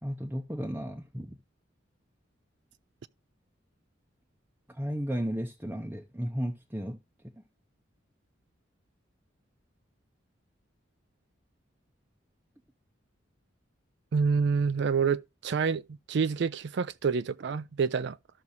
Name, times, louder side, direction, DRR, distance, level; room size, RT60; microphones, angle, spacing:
voice 1, 0.0-1.4 4.7-7.0, equal, 10° right, 0.7 m, -34 dB
voice 2, 14.1-15.8 16.1-18.2, right 5 dB, 60° right, 0.4 m, -27 dB
13.0 x 6.0 x 2.7 m
head